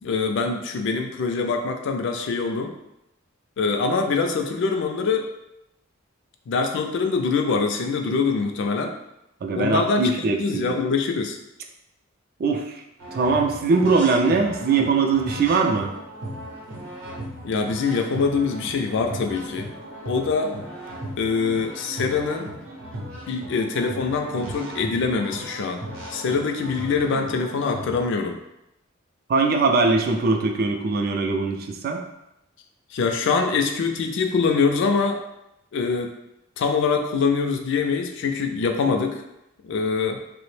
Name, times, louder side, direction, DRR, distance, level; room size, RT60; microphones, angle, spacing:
voice 1, 0.0-2.7 3.6-5.3 6.5-8.9 9.6-11.4 17.4-19.7 20.0-20.6 21.2-22.5 23.3-25.8 26.1-28.4 32.9-35.2 35.7-36.1 36.6-39.2 39.6-40.2, left 4 dB, 65° left, 4 dB, 0.3 m, -24 dB
voice 2, 9.4-10.7 12.4-12.7 13.1-15.9 29.3-32.0, right 4 dB, 50° right, 3 dB, 0.3 m, -21 dB
sound 1, 13.0-28.0, equal, 70° right, 0.7 m, -37 dB
2.8 x 2.0 x 3.1 m, 0.85 s
head